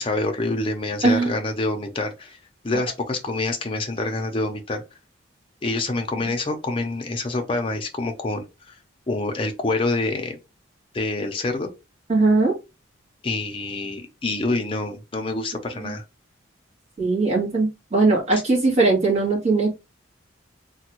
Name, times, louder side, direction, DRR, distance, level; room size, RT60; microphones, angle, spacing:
voice 1, 0.0-2.4 2.6-4.8 5.6-8.7 9.1-10.4 10.9-11.7 13.2-16.0 18.3-18.4, left 2 dB, 25° left, 0.6 m, -26 dB
voice 2, 1.0-1.4 12.1-12.5 15.8-15.9 17.0-19.8, right 3 dB, 35° right, 1.4 m, -20 dB
3.3 x 2.2 x 3.0 m
head